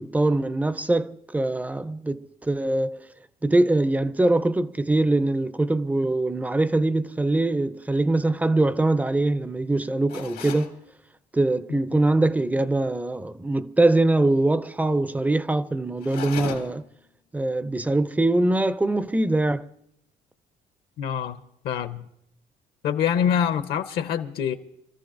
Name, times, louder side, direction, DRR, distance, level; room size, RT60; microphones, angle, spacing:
voice 1, 0.0-3.1 3.4-10.8 11.3-16.8 17.3-19.7, right 2 dB, 10° right, 0.4 m, -23 dB
sound 1, 10.1-10.7 16.0-16.9, left 9 dB, 85° left, 1.9 m, -36 dB
voice 2, 21.0-21.4 21.6-22.0 22.8-24.6, left 8 dB, 70° left, 0.8 m, -25 dB
27.5 x 14.0 x 2.5 m
cardioid pair, 110°, 17 cm